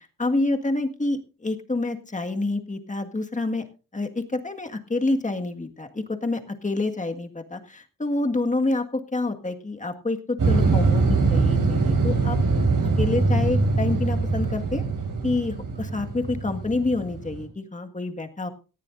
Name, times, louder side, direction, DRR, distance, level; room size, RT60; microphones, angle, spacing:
voice 1, 0.0-3.6 3.9-14.8 15.2-18.5, left 2 dB, 20° left, 5 dB, 1.8 m, -28 dB
sound 1, 10.4-17.4, right 3 dB, 65° right, 5.8 m, -23 dB
18.5 x 14.0 x 2.6 m, 0.34 s
wide cardioid pair, 110°, 35 cm